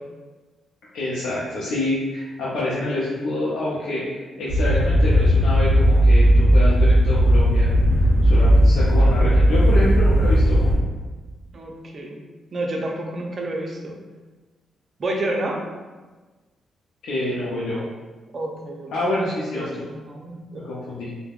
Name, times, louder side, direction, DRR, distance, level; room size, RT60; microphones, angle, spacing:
voice 1, 0.9-4.0 4.4-7.7 8.2-10.7 17.0-17.8 18.9-19.8 20.5-21.1, left 1 dB, 80° left, -8 dB, 0.5 m, -27 dB
sound 1, 4.5-10.8, equal, 50° left, 0.9 m, -16 dB
voice 2, 11.5-12.2 12.5-14.0 15.0-15.6 18.3-18.9 19.9-20.6, right 1 dB, 50° right, 0 dB, 0.5 m, -29 dB
3.3 x 2.1 x 2.3 m, 1.3 s
supercardioid pair, 55°, 0 cm